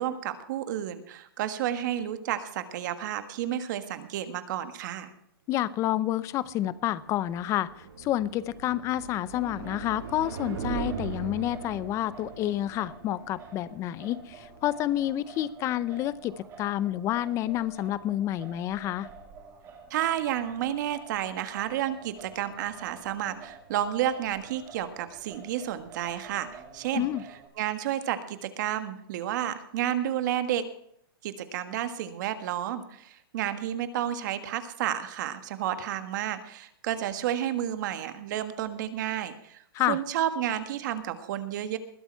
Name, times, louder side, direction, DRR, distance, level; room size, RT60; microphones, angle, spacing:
voice 1, 0.0-5.1 19.9-27.1 27.6-30.6 31.2-39.6 39.9-41.8, right 11 dB, 50° right, 10 dB, 1.5 m, -31 dB
voice 2, 5.5-19.1 26.9-27.2 39.7-40.0, left 13 dB, 25° left, 18 dB, 0.6 m, -29 dB
sound 1, 6.1-15.1, right 6 dB, 85° right, 6.1 m, -40 dB
Singing, 9.3-27.5, right 6 dB, 25° right, 3.2 m, -49 dB
20.5 x 8.2 x 4.6 m, 0.71 s
hypercardioid pair, 150°, 13 cm